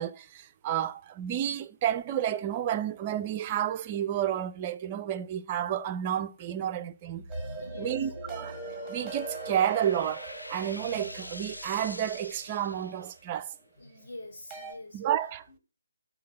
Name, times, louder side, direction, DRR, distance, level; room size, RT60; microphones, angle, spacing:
voice 1, 0.0-7.2 7.8-8.6 8.9-13.5 14.9-15.6, right 10 dB, 25° right, 0.4 m, -31 dB
sound 1, 7.1-13.4, equal, 85° left, 1.1 m, -43 dB
sound 2, 7.3-13.4 14.5-14.7, right 3 dB, ahead, 1.8 m, -43 dB
voice 2, 7.6-8.1 13.6-15.0 15.5-15.6, left 2 dB, 45° left, 2.9 m, -46 dB
6.6 x 4.3 x 6.6 m
figure-of-eight pair, 150°, 0 cm